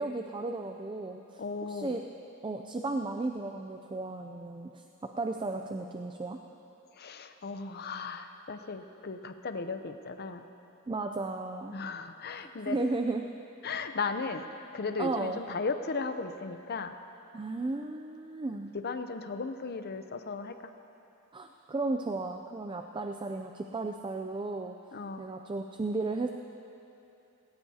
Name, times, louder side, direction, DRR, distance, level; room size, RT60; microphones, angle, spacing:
voice 1, 0.0-1.4 1.7-2.0 2.4-6.4 10.9-11.8 12.4-13.3 15.0-15.4 17.3-18.7 21.3-24.7 25.2-26.3, right 2 dB, 20° right, 5 dB, 0.4 m, -34 dB
voice 2, 1.4-2.0 6.9-10.5 11.7-12.8 13.6-14.4 14.7-16.9 18.7-20.7 24.9-25.3, left 4 dB, 45° left, 8 dB, 0.7 m, -36 dB
19.0 x 17.5 x 2.8 m, 2.8 s
head